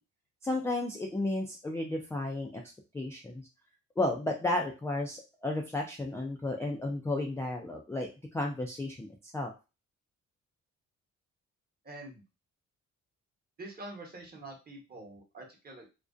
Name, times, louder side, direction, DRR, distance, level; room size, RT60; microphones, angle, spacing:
voice 1, 0.4-2.6 2.9-3.5 4.0-9.1 9.3-9.5, left 2 dB, 10° left, 0 dB, 0.3 m, -33 dB
voice 2, 11.8-12.2 13.6-15.9, right 2 dB, 30° right, 0 dB, 1.0 m, -46 dB
2.4 x 2.1 x 2.4 m, 0.29 s
cardioid pair, 90°, 30 cm